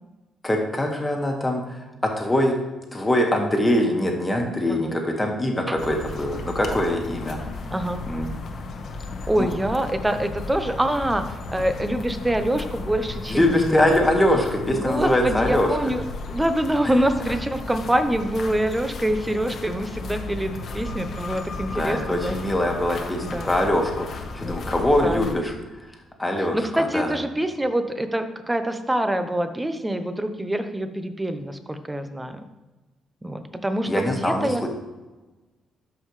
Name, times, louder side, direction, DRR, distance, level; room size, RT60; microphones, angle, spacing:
voice 1, 0.4-2.6 2.9-7.4 8.1-8.3 9.4-9.5 13.3-15.7 21.7-25.5 26.2-27.1 33.9-34.7, left 1 dB, 15° left, 1 dB, 1.8 m, -23 dB
sound 1, 5.8-25.3, left 3 dB, 55° left, 1.1 m, -34 dB
voice 2, 7.7-8.0 9.3-11.2 11.5-14.0 14.7-16.0 16.3-22.4 23.2-23.5 24.4-24.6 25.0-25.4 26.4-32.4 33.2-34.7, right 1 dB, 10° right, 9 dB, 0.8 m, -25 dB
12.5 x 5.5 x 3.3 m, 1.2 s
cardioid pair, 90°, 0 cm